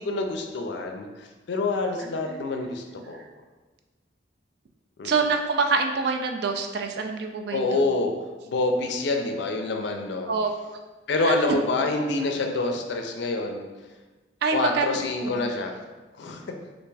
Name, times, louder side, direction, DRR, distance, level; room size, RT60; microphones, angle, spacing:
voice 1, 0.0-3.3 5.0-5.1 7.5-8.1 8.4-10.3 11.1-13.7 14.5-15.8 16.2-16.4, left 2 dB, 65° left, 4 dB, 0.4 m, -27 dB
voice 2, 2.0-2.7 3.1-3.2 5.0-7.8 10.3-10.5 11.2-11.3 14.4-15.5, right 4 dB, 60° right, 5 dB, 0.3 m, -27 dB
3.3 x 2.5 x 3.2 m, 1.2 s
head